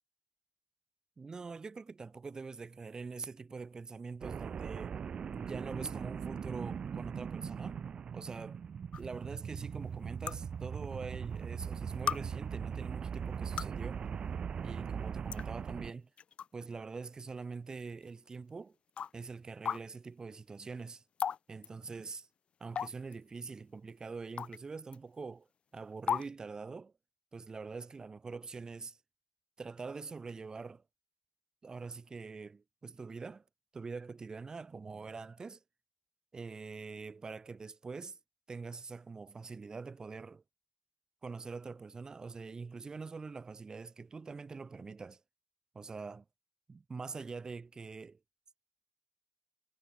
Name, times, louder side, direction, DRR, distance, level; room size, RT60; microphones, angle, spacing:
voice 1, 1.2-5.0 5.3-7.8 8.1-8.6 9.0-14.1 14.6-16.1 16.5-18.7 19.1-21.0 21.5-22.3 22.6-25.5 25.7-26.9 27.3-29.0 29.6-30.8 31.6-33.4 33.7-35.6 36.3-38.2 38.5-40.4 41.2-45.2 45.7-46.2 46.7-48.2, right 4 dB, 30° right, 0.9 m, -44 dB
sound 1, 4.2-15.9, right 7 dB, 50° right, 0.4 m, -40 dB
sound 2, 8.9-9.0 10.3-10.4 11.4-11.5 12.1-12.2 13.3-13.8 14.8-14.9 15.3-15.4 16.2-16.5 17.0-17.1 18.0-18.1 19.0-19.1 19.7-19.8 21.2-21.4 21.6-21.7 22.8-23.1 24.4-24.6 24.9-25.0 26.1-26.3, left 7 dB, 50° left, 0.3 m, -34 dB
cardioid pair, 110°, 2 cm